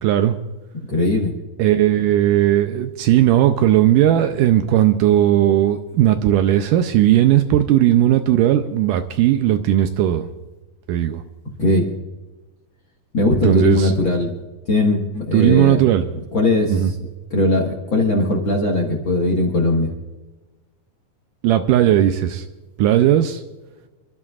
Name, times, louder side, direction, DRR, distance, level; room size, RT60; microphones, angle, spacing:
voice 1, 0.0-0.4 1.6-10.3 10.9-11.2 13.4-13.9 15.3-16.1 16.7-16.9 21.4-22.4 22.8-23.4, right 12 dB, 80° right, 8 dB, 2.0 m, -16 dB
voice 2, 0.9-1.3 11.6-11.9 13.1-14.3 14.7-15.8 16.3-17.0 17.3-19.9, left 2 dB, 45° left, -1 dB, 1.7 m, -19 dB
29.5 x 12.0 x 2.4 m, 1.2 s
omnidirectional pair, 4.1 m